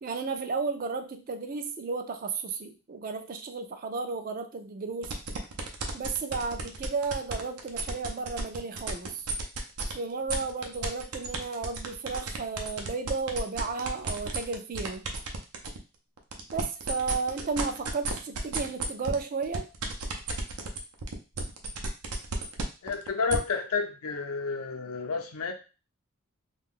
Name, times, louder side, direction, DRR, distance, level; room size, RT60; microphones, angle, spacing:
voice 1, 0.0-5.2 5.9-9.3 9.9-15.1 16.5-19.7, right 4 dB, 40° right, 8 dB, 0.3 m, -33 dB
sound 1, 5.0-9.9 10.3-15.8 16.2-23.4, right 4 dB, 85° right, 0.6 m, -33 dB
voice 2, 22.8-25.5, left 5 dB, 80° left, 4 dB, 0.6 m, -30 dB
2.4 x 2.3 x 3.5 m, 0.32 s
head